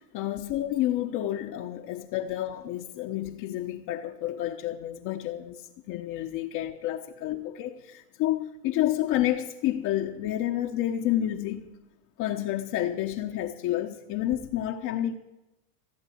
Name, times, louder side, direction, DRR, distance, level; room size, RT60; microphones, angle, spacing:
voice 1, 0.0-5.6 5.9-11.7 12.2-15.1, left 13 dB, 40° left, 1.1 m, -29 dB
15.5 x 7.6 x 9.3 m
supercardioid pair, 130°, 48 cm